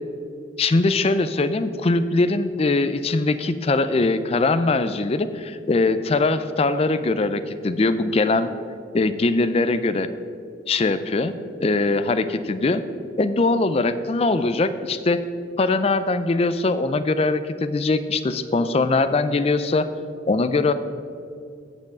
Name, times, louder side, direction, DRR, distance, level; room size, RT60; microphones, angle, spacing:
voice 1, 0.6-8.5 8.9-10.1 10.7-11.3 11.6-12.8 13.2-15.2 15.6-19.9 20.3-20.7, left 3 dB, 30° left, 12 dB, 0.4 m, -21 dB
7.6 x 6.4 x 7.1 m, 2.4 s
head